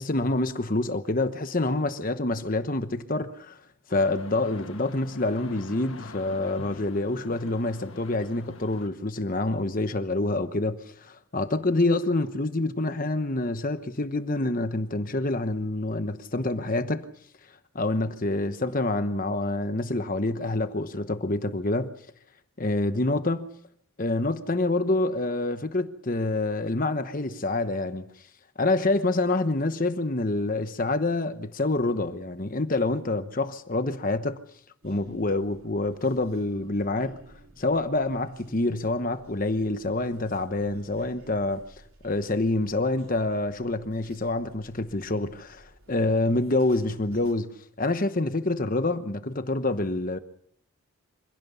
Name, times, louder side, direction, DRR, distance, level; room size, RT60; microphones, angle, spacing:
voice 1, 0.0-3.6 3.9-17.1 17.7-21.9 22.6-23.5 24.0-28.1 28.6-34.4 34.8-37.2 37.6-41.6 42.0-47.5 47.8-50.2, left 2 dB, 40° left, 1.0 m, -27 dB
sound 1, 3.9-8.9, left 3 dB, 65° left, 1.5 m, -45 dB
sound 2, 34.8-47.3, right 1 dB, 70° right, 3.7 m, -53 dB
25.5 x 16.5 x 7.1 m
head